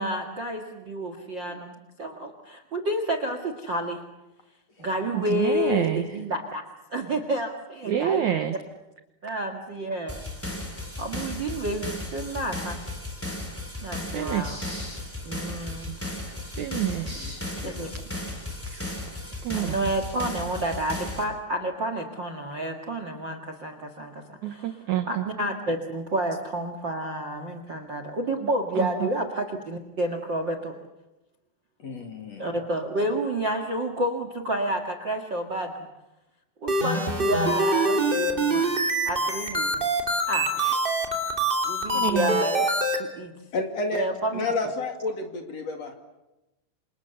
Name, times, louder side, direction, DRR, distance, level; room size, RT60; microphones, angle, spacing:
voice 1, 0.0-4.0 4.8-6.6 6.9-8.3 9.2-10.2 11.0-12.8 13.8-14.6 15.2-15.9 17.0-17.2 17.6-17.9 19.5-30.7 32.4-35.7 36.6-38.7 39.0-39.8 40.3-40.5 41.6-42.7 42.9-43.3 43.9-44.4, right 1 dB, 45° right, 7 dB, 1.6 m, -30 dB
voice 2, 5.1-6.1 7.9-8.5 14.1-15.0 16.2-17.4 18.7-19.0 19.4-19.8 24.4-25.3 28.8-29.1 41.9-42.4, right 10 dB, 70° right, 8 dB, 1.8 m, -28 dB
sound 1, 10.1-21.2, left 1 dB, 5° left, 3.0 m, -35 dB
voice 3, 31.8-32.5 40.6-40.7 43.5-44.1 44.3-45.9, left 3 dB, 45° left, 4 dB, 3.0 m, -30 dB
sound 2, 36.7-43.0, right 1 dB, 15° right, 2.3 m, -24 dB
28.0 x 27.0 x 7.0 m, 1.0 s
omnidirectional pair, 4.8 m